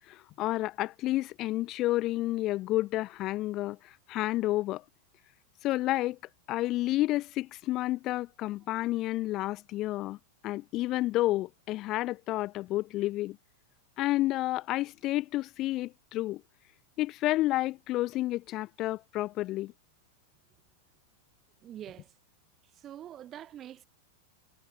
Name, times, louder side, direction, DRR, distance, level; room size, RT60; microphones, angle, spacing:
voice 1, 0.1-4.8 5.6-6.2 6.5-10.2 10.4-13.4 14.0-16.4 17.0-19.7, left 16 dB, 35° left, 0.4 m, -30 dB
voice 2, 21.6-22.1 22.8-23.8, right 11 dB, 30° right, 1.5 m, -45 dB
figure-of-eight pair, 90°, 0 cm